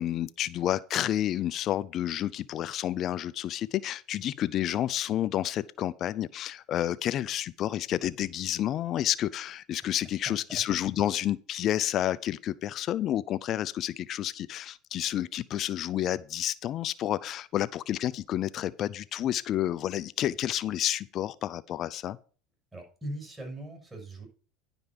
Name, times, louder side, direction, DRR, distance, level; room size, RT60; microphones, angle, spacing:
voice 1, 0.0-22.2, left 12 dB, 45° left, 0.4 m, -30 dB
voice 2, 10.3-10.6 22.7-24.3, right 1 dB, 15° right, 6.0 m, -40 dB
11.0 x 5.2 x 5.9 m
supercardioid pair, 105°, 0 cm